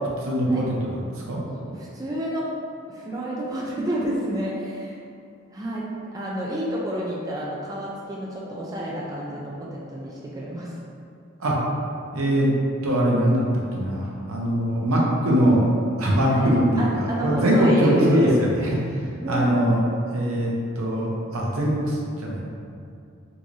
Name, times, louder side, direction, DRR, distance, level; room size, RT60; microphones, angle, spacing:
voice 1, 0.2-0.9 1.3-1.4 11.4-11.5 12.1-12.5 12.8-13.4 13.7-15.6 16.0-18.5 19.3-19.8 20.1-22.4, equal, 80° right, -4 dB, 0.7 m, -22 dB
voice 2, 1.6-2.5 2.9-5.0 5.5-5.8 6.1-10.7 16.2-18.4 19.2-19.6, right 1 dB, 15° right, -5 dB, 0.3 m, -29 dB
3.8 x 2.5 x 3.0 m, 2.5 s
head